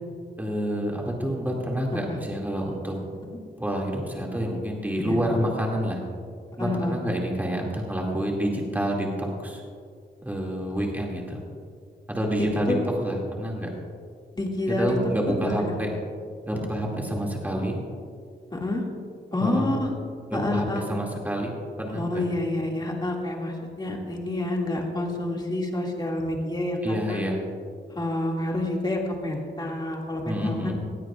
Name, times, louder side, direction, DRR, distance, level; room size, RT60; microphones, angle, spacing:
voice 1, 0.4-3.0 3.6-6.0 6.6-9.6 10.2-11.4 12.1-13.7 14.8-15.9 16.4-17.8 19.4-19.7 20.3-21.5 21.8-22.2 26.8-27.4 30.2-30.7, equal, 10° right, -2 dB, 2.4 m, -28 dB
voice 2, 6.6-7.0 12.4-12.8 14.4-15.0 15.3-15.7 18.5-18.8 19.3-19.9 20.3-20.8 21.9-27.2 27.9-30.7, left 1 dB, 25° left, -1 dB, 2.3 m, -28 dB
19.0 x 16.0 x 2.5 m, 2.2 s
wide cardioid pair, 125°, 18 cm